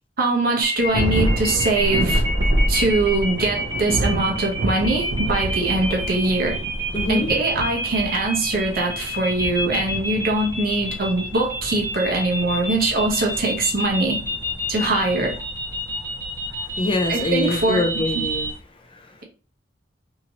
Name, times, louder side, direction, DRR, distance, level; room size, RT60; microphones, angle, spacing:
voice 1, 0.2-2.2 2.7-6.6 7.1-14.2 14.7-15.4 17.1-17.8 18.1-18.2, right 2 dB, 50° right, 0.8 m, -22 dB
sound 1, 0.6-18.5, equal, 20° right, 1.0 m, -29 dB
sound 2, 0.7-18.6, equal, 10° left, 1.1 m, -32 dB
Thunder, 0.9-14.9, right 2 dB, 75° right, 0.4 m, -30 dB
voice 2, 6.9-7.3 16.7-18.5 18.7-19.2, left 2 dB, 30° left, 0.4 m, -25 dB
2.9 x 2.7 x 2.8 m
head